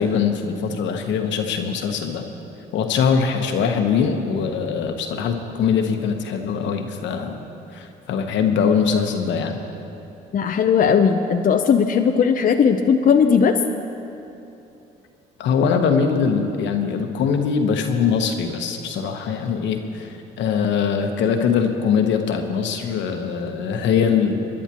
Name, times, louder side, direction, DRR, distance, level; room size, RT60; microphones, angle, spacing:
voice 1, 0.0-2.3 2.7-7.4 7.7-9.6 15.4-24.5, left 6 dB, 70° left, 5 dB, 1.2 m, -22 dB
voice 2, 10.3-13.6, left 6 dB, 45° left, 4 dB, 0.7 m, -17 dB
24.0 x 11.0 x 3.0 m, 2.8 s
supercardioid pair, 70°, 20 cm